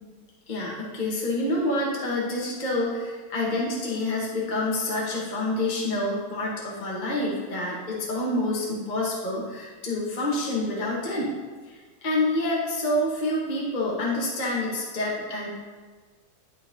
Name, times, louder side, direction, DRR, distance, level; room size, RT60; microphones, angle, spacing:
voice 1, 0.5-11.3 11.7-15.5, left 1 dB, 35° left, -4 dB, 0.7 m, -27 dB
11.0 x 3.8 x 2.6 m, 1.4 s
omnidirectional pair, 2.2 m